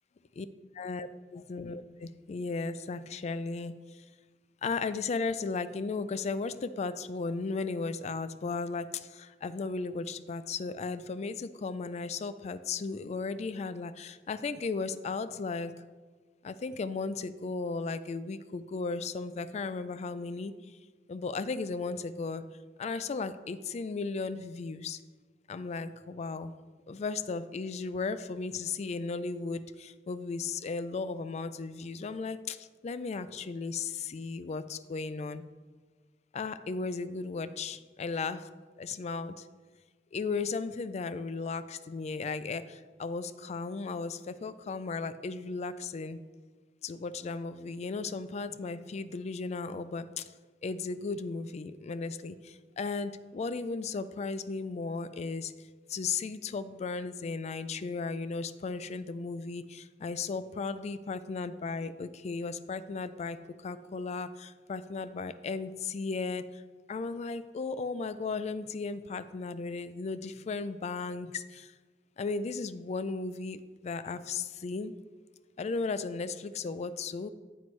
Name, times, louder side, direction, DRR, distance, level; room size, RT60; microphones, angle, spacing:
voice 1, 0.7-4.0 4.6-15.7 16.4-20.5 21.1-22.4 22.8-25.0 25.5-26.5 26.9-35.4 36.3-38.5 38.8-39.5 40.1-46.2 46.8-50.3 50.6-55.5 55.9-66.6 66.9-71.7 72.2-74.9 75.6-77.3, left 4 dB, 40° left, 13 dB, 0.3 m, -35 dB
9.4 x 7.9 x 3.2 m, 1.4 s
head